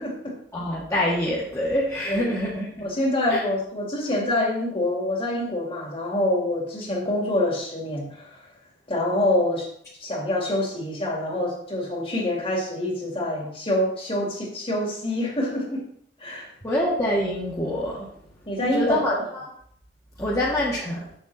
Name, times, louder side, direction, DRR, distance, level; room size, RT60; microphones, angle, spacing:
voice 1, 0.0-0.4 2.0-2.3 2.8-8.4 8.9-9.7 10.0-15.9 16.2-16.5 18.5-19.2, left 1 dB, 30° left, -1 dB, 2.3 m, -26 dB
voice 2, 0.5-2.9 3.3-3.4 16.6-18.0 18.7-19.5 20.2-21.0, left 1 dB, 15° left, -6 dB, 1.6 m, -25 dB
8.1 x 7.1 x 4.1 m, 0.66 s
head